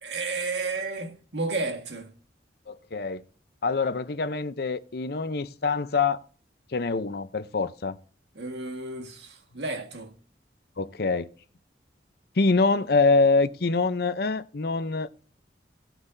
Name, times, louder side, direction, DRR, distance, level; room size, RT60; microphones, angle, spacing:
voice 1, 0.0-2.1 8.3-10.1, right 3 dB, 80° right, 1.6 m, -32 dB
voice 2, 2.7-3.2 3.6-6.2 6.7-8.0 10.8-11.3 12.4-15.1, left 4 dB, 60° left, 0.7 m, -25 dB
17.5 x 6.0 x 2.7 m
head